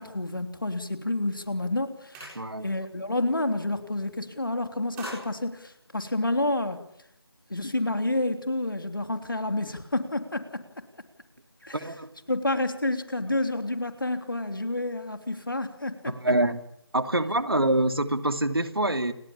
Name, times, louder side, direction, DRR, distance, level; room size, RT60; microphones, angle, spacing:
voice 1, 0.0-2.4 2.6-6.8 7.5-10.8 11.6-11.8 12.3-16.2, left 2 dB, 55° left, 8 dB, 3.3 m, -29 dB
sound 1, 2.0-2.9 3.2-3.5 3.8-4.3 4.7-6.5, right 1 dB, 5° right, 7.1 m, -44 dB
voice 2, 2.3-2.7 11.7-12.1 16.1-16.6 16.9-19.1, right 1 dB, 65° right, 9 dB, 3.0 m, -25 dB
29.5 x 20.5 x 8.8 m, 0.74 s
figure-of-eight pair, 165°, 13 cm